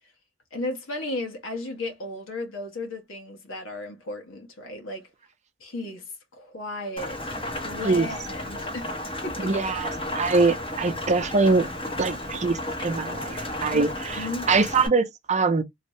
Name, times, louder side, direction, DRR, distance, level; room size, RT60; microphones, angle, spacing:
voice 1, 0.5-5.1 5.6-7.2 7.6-9.0 9.2-9.6 13.7-13.9 14.2-14.5, left 2 dB, 85° left, 1.5 m, -34 dB
Rain, 7.0-14.9, left 1 dB, 30° left, 1.3 m, -33 dB
voice 2, 9.4-11.7 12.0-15.6, right 4 dB, 35° right, 0.6 m, -23 dB
3.2 x 2.7 x 3.1 m
head